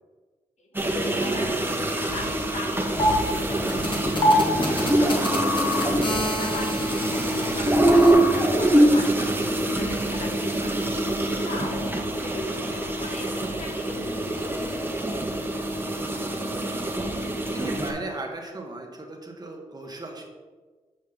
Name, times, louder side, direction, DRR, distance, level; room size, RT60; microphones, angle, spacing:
voice 1, 0.6-6.0 6.4-8.1 8.6-10.9 11.3-14.7, left 2 dB, 65° left, 2 dB, 1.4 m, -38 dB
sound 1, 0.7-17.9, right 1 dB, 15° right, 1.5 m, -24 dB
sound 2, 2.9-8.1, equal, 40° left, 1.9 m, -26 dB
voice 2, 15.9-17.0 17.3-20.2, right 2 dB, 30° right, 1 dB, 1.7 m, -38 dB
7.9 x 5.2 x 3.9 m, 1.4 s
supercardioid pair, 50°, 13 cm